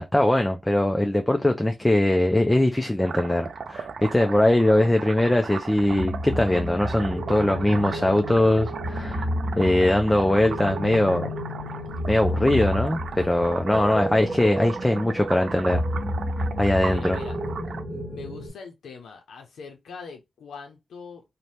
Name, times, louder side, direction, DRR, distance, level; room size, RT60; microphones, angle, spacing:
voice 1, 0.0-9.3 9.6-11.3 12.1-15.8 16.6-17.2, left 1 dB, 15° left, 0.4 m, -21 dB
sound 1, 3.0-17.8, right 6 dB, 75° right, 0.4 m, -37 dB
sound 2, 5.8-18.5, equal, 15° right, 1.4 m, -31 dB
voice 2, 16.9-17.4 17.9-21.2, left 5 dB, 90° left, 0.5 m, -42 dB
2.7 x 2.1 x 3.1 m
cardioid pair, 55°, 0 cm